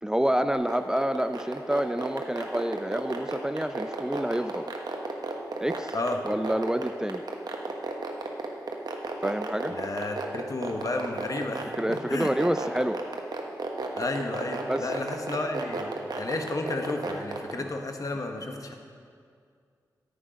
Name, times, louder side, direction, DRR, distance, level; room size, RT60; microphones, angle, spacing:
voice 1, 0.0-4.7 5.6-5.9 6.2-7.2 9.2-9.7 11.8-13.0 14.7-14.9 17.6-17.7, right 1 dB, 10° right, 10 dB, 0.4 m, -28 dB
sound 1, 0.5-17.5, right 4 dB, 65° right, 1.2 m, -32 dB
voice 2, 9.7-12.3 14.0-15.9 16.2-18.7, left 2 dB, 50° left, 4 dB, 1.2 m, -32 dB
9.9 x 8.5 x 5.1 m, 2.2 s
cardioid pair, 40°, 8 cm